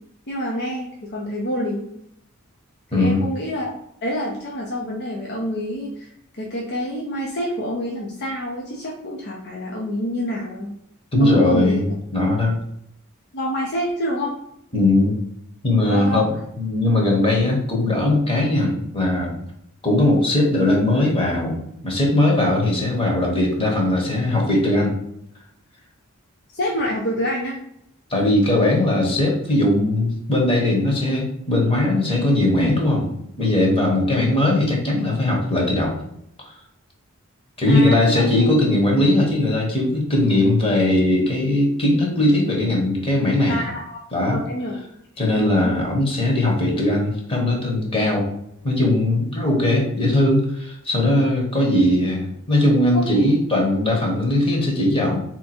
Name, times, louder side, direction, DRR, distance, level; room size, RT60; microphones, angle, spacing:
voice 1, 0.3-1.9 2.9-3.7 4.0-6.1 6.4-10.7 11.2-11.8 13.3-14.3 15.9-16.3 26.5-27.6 37.7-38.5 43.5-44.0 44.3-44.8 45.3-45.8 52.9-53.0, equal, 50° left, -3 dB, 0.8 m, -27 dB
voice 2, 2.9-3.2 11.1-12.6 14.7-15.2 15.6-19.4 19.8-21.6 21.8-24.9 28.1-36.0 36.4-36.5 37.6-43.6 44.1-44.4 45.2-48.3 48.6-55.2, left 1 dB, 25° left, -1 dB, 1.2 m, -19 dB
3.5 x 3.0 x 4.3 m, 0.76 s
head